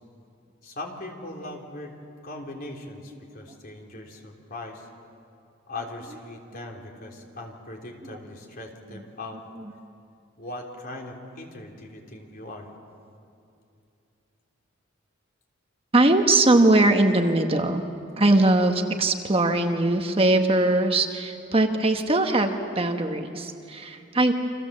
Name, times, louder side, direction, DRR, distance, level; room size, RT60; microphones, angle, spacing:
voice 1, 0.6-1.9 2.2-4.9 5.7-9.4 10.4-12.7, left 2 dB, 45° left, 0 dB, 3.5 m, -39 dB
voice 2, 15.9-17.8 18.2-24.3, right 2 dB, 30° right, 5 dB, 1.3 m, -21 dB
29.5 x 26.0 x 7.5 m, 2.6 s
head